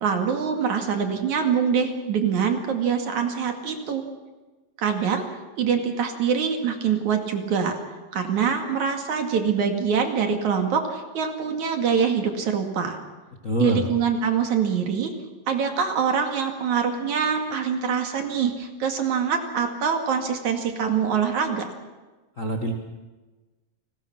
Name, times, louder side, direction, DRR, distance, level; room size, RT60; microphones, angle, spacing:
voice 1, 0.0-4.0 4.8-5.3 5.6-7.8 8.1-13.0 13.6-15.1 15.5-21.7, right 6 dB, 60° right, 5 dB, 3.4 m, -24 dB
voice 2, 13.4-13.8 22.4-22.7, left 1 dB, 35° left, 2 dB, 1.3 m, -25 dB
30.0 x 19.5 x 6.0 m, 1.2 s
omnidirectional pair, 4.0 m